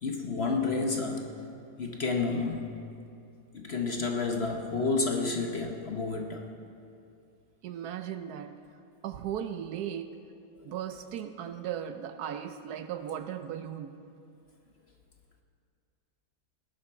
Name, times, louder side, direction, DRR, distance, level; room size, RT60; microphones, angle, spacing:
voice 1, 0.0-1.3 1.8-2.8 3.5-6.5, left 3 dB, 45° left, 2 dB, 1.0 m, -30 dB
voice 2, 7.6-8.7 9.0-10.2 10.6-14.0, right 9 dB, 70° right, 9 dB, 1.1 m, -37 dB
19.0 x 11.0 x 4.4 m, 2.5 s
omnidirectional pair, 1.8 m